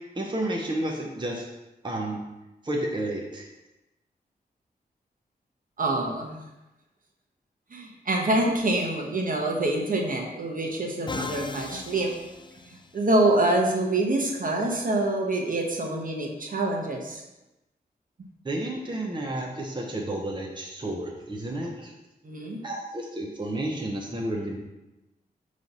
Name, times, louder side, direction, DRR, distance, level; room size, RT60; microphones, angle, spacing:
voice 1, 0.2-1.5 1.8-2.2 2.6-3.5 18.4-21.9 22.6-24.6, right 1 dB, 30° right, 0 dB, 0.9 m, -31 dB
voice 2, 5.8-6.4 7.7-12.1 12.7-17.2 22.2-22.6, right 2 dB, 55° right, 0 dB, 1.1 m, -26 dB
Musical instrument, 11.1-13.2, left 4 dB, 30° left, 0.3 m, -37 dB
5.4 x 3.2 x 5.4 m, 0.99 s
cardioid pair, 60°, 17 cm